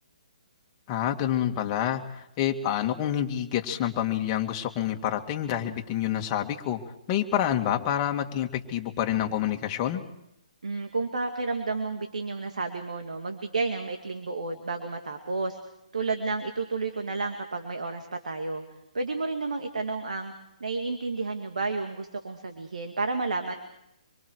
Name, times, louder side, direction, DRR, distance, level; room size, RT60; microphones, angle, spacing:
voice 1, 0.9-6.8 7.1-10.0, left 11 dB, 30° left, 3 dB, 2.2 m, -28 dB
voice 2, 10.6-15.6 15.9-18.6 18.9-20.3 20.6-23.6, right 3 dB, 75° right, 5 dB, 2.3 m, -31 dB
26.0 x 24.5 x 4.8 m, 0.81 s
figure-of-eight pair, 140°, 4 cm